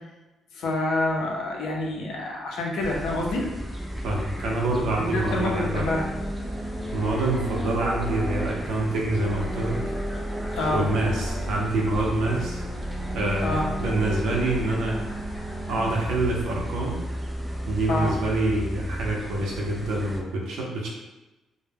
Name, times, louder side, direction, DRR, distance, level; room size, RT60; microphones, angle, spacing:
voice 1, 0.5-3.4 5.0-6.1 10.5-10.8 13.4-13.6 17.9-18.1, left 2 dB, 85° left, -2 dB, 0.6 m, -27 dB
sound 1, 2.8-20.2, equal, ahead, 0.3 m, -32 dB
voice 2, 4.0-5.9 6.9-9.8 10.7-12.6 13.1-15.0 15.7-17.0 17.7-20.9, right 2 dB, 85° right, -2 dB, 0.6 m, -26 dB
2.1 x 2.1 x 3.3 m, 1.1 s
cardioid pair, 125°, 0 cm